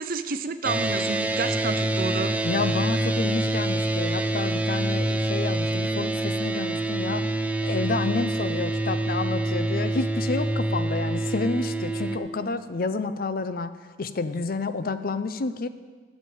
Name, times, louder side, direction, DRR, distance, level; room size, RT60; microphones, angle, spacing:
voice 1, 0.0-2.4, right 4 dB, 55° right, 11 dB, 0.6 m, -30 dB
sound 1, 0.6-12.2, right 2 dB, 10° right, 0.5 m, -26 dB
voice 2, 2.4-7.3 7.6-13.7 14.0-15.7, left 3 dB, 55° left, 12 dB, 0.5 m, -29 dB
9.5 x 7.4 x 7.8 m, 1.5 s
head